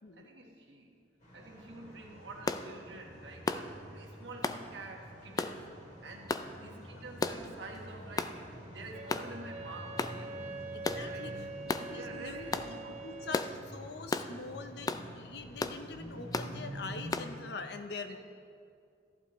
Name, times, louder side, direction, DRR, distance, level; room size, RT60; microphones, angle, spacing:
voice 1, 0.1-0.9 1.3-5.7 6.0-10.6 10.9-11.4 11.9-13.1 18.0-18.2, right 2 dB, 90° right, 1 dB, 1.5 m, -48 dB
sound 1, 1.2-17.1, equal, 45° left, 2.8 m, -48 dB
sound 2, 2.5-2.7 3.5-3.7 4.4-4.6 5.4-5.6 6.3-6.5 7.2-7.5 8.2-8.4 9.1-9.3 10.0-10.2 10.8-11.0 11.7-11.9 12.5-12.7 13.3-13.5 14.1-14.3 14.9-15.1 15.6-15.8 16.3-16.5 17.1-17.3, left 3 dB, 20° left, 0.3 m, -33 dB
voice 2, 6.6-7.0 10.7-11.3 11.6-18.2, left 4 dB, 65° left, 7 dB, 0.7 m, -44 dB
Wind instrument woodwind instrument, 8.9-13.6, right 3 dB, 40° right, 0.5 m, -44 dB
14.0 x 11.0 x 3.1 m, 2.3 s
head